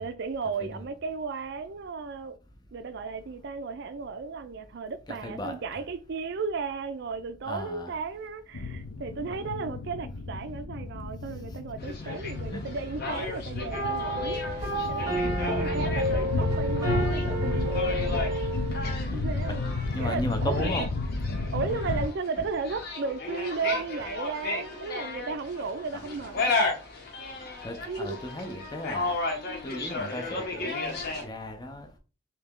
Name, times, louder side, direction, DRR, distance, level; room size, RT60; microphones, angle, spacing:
voice 1, 0.0-2.4 2.7-18.3 19.1-19.6 20.0-20.7 21.5-26.5 27.9-28.2, right 4 dB, 50° right, 0.4 m, -35 dB
voice 2, 5.1-5.6 7.5-7.9 12.0-12.1 12.5-12.6 19.0-19.2 19.9-20.9 25.9-26.4 27.6-29.2 29.6-31.9, left 1 dB, 20° left, 0.5 m, -36 dB
sound 1, 8.5-22.1, left 2 dB, 80° left, 0.6 m, -32 dB
sound 2, 11.8-31.2, left 3 dB, 45° left, 0.7 m, -35 dB
sound 3, 13.7-19.0, right 1 dB, 20° right, 0.8 m, -30 dB
3.2 x 2.9 x 3.5 m
head